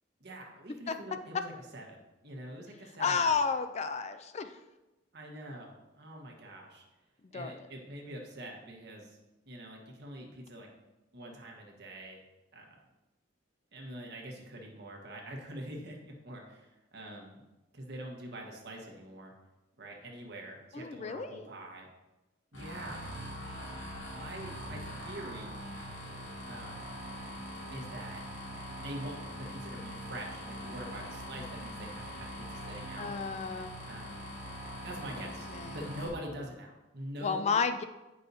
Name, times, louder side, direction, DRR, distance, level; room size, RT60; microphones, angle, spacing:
voice 1, 0.2-3.5 5.1-6.8 7.3-9.2 9.5-10.7 11.1-12.2 12.5-12.7 13.7-17.4 17.7-19.3 19.8-21.9 22.5-23.0 24.1-25.5 26.5-26.9 27.7-28.2 28.7-33.1 33.9-34.3 34.8-37.5, right 1 dB, 60° right, 0 dB, 1.4 m, -45 dB
voice 2, 3.0-4.5 7.3-7.5 20.7-21.3 33.0-33.7 35.5-35.7 37.2-37.8, left 5 dB, 35° left, 9 dB, 0.3 m, -31 dB
sound 1, 22.5-36.1, equal, 80° left, 2.3 m, -42 dB
9.6 x 5.4 x 2.7 m, 1.0 s
head